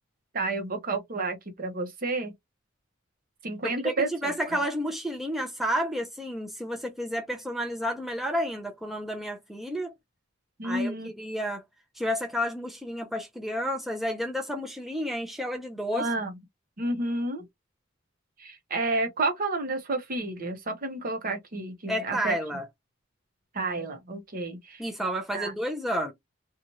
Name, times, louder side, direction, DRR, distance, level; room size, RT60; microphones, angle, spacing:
voice 1, 0.3-2.3 3.4-4.6 10.6-11.1 15.9-16.4 16.8-17.4 18.4-22.3 23.5-24.8 25.3-25.5, right 2 dB, 45° right, 0.8 m, -30 dB
voice 2, 3.6-9.9 10.6-11.6 12.0-16.1 21.9-22.6 24.8-26.1, equal, ahead, 0.5 m, -31 dB
3.0 x 2.3 x 2.7 m
head